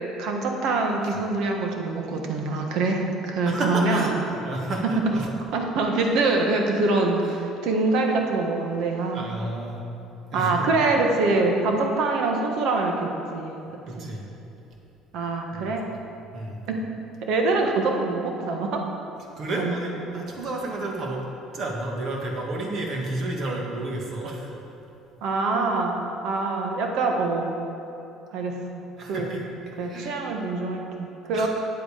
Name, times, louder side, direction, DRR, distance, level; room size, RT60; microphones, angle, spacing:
voice 1, 0.2-4.1 4.8-4.9 5.5-9.3 10.3-13.6 14.0-14.1 15.1-15.8 16.7-16.8 17.2-18.8 19.6-19.8 25.2-26.0 26.2-27.6 28.3-29.3 29.8-31.5, right 3 dB, 70° right, 2 dB, 1.4 m, -25 dB
voice 2, 3.4-5.3 9.1-9.8 10.3-10.7 13.6-14.3 15.5-15.8 16.3-16.6 19.4-21.2 21.5-24.5 25.5-25.6 29.0-29.4 29.8-30.2 31.3-31.5, right 2 dB, 50° right, 0 dB, 1.9 m, -31 dB
9.3 x 8.1 x 5.1 m, 2.8 s
cardioid pair, 110°, 0 cm